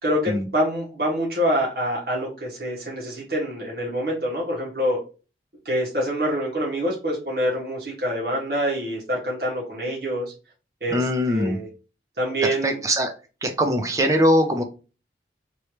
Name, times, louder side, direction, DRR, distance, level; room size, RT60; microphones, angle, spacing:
voice 1, 0.0-5.0 5.6-10.3 10.8-11.7 12.2-12.8, equal, 55° right, -4 dB, 1.5 m, -26 dB
voice 2, 10.9-11.6 12.4-13.1 13.4-14.6, equal, 20° right, 4 dB, 0.6 m, -21 dB
3.2 x 3.0 x 2.9 m, 0.33 s
head